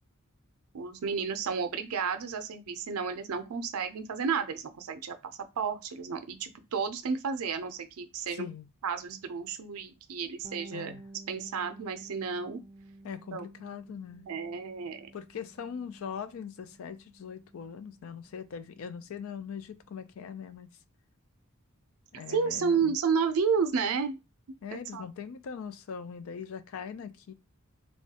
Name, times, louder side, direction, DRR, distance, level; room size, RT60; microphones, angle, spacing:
voice 1, 0.7-8.5 8.8-10.9 11.3-12.6 13.3-13.4 14.3-15.1 22.3-24.2 24.7-25.1, right 6 dB, 85° right, 0.5 m, -31 dB
voice 2, 8.3-8.7 10.7-11.0 13.0-14.3 15.1-20.8 22.2-23.0 24.6-27.3, left 7 dB, 70° left, 0.4 m, -41 dB
Bass guitar, 10.4-20.0, right 2 dB, 30° right, 0.3 m, -53 dB
3.0 x 2.3 x 2.8 m
head